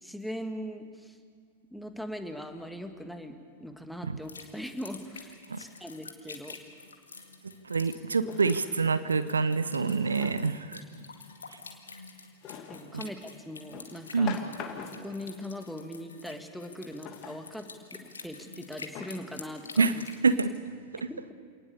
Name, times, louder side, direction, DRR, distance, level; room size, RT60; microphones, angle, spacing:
voice 1, 0.0-1.2 1.7-6.6 12.7-14.3 14.8-20.0 21.1-21.3, equal, ahead, 6 dB, 1.8 m, -40 dB
sound 1, 4.2-20.5, left 4 dB, 75° left, 2.1 m, -48 dB
Drawer open or close, 6.9-7.0 8.2-9.1 9.8-10.5 12.4-12.9 13.7-15.2 17.0-17.5 18.2-18.3 18.9-19.5, left 7 dB, 35° left, 2.3 m, -43 dB
voice 2, 7.6-10.8 14.1-14.4 19.8-19.9 20.2-20.5 20.9-21.1, right 4 dB, 75° right, 14 dB, 0.7 m, -26 dB
27.5 x 19.0 x 7.0 m, 2.1 s
figure-of-eight pair, 90°, 0 cm